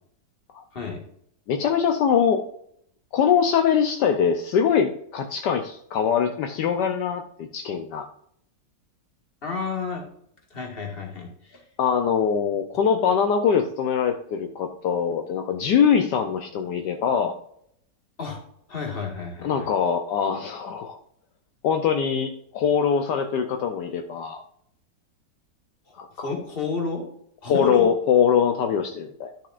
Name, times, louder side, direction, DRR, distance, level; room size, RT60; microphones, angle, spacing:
voice 1, 0.7-1.0 9.4-10.0 10.5-11.6 18.2-18.4 18.7-19.7 25.9-27.0 27.4-27.9, left 4 dB, 30° left, 1 dB, 2.0 m, -30 dB
voice 2, 1.5-2.4 3.1-8.1 11.8-17.3 19.4-21.0 21.6-24.4 26.0-26.3 27.5-29.3, left 7 dB, 75° left, 5 dB, 1.3 m, -23 dB
11.5 x 6.6 x 2.5 m, 0.69 s
omnidirectional pair, 1.9 m